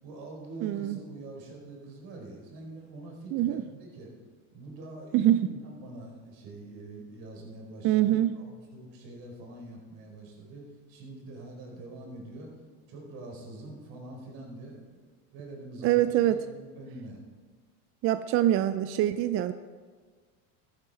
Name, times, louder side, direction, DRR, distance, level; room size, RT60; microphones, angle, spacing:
voice 1, 0.0-4.1 4.5-12.5 12.9-15.0 15.3-17.2, right 2 dB, 55° right, 0 dB, 4.7 m, -45 dB
voice 2, 0.6-1.0 3.3-3.6 5.1-5.5 7.8-8.4 15.8-16.4 18.0-19.5, right 13 dB, 35° right, 12 dB, 0.4 m, -24 dB
13.5 x 12.5 x 4.3 m, 1.5 s
supercardioid pair, 115°, 44 cm